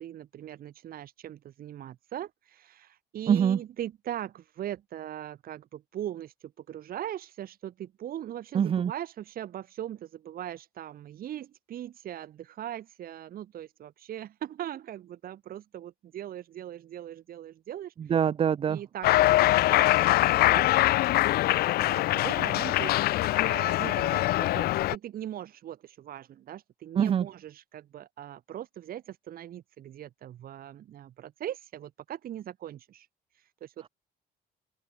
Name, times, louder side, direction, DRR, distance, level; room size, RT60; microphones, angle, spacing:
voice 1, 0.0-17.9 18.7-20.7 21.7-33.1 33.3-33.9, right 11 dB, 60° right, 3.7 m, -40 dB
voice 2, 3.3-3.6 8.5-8.9 18.1-18.8 27.0-27.2, right 8 dB, 35° right, 0.5 m, -24 dB
Cheering, 19.0-25.0, left 16 dB, 65° left, 0.5 m, -23 dB
open air
cardioid pair, 110°, 17 cm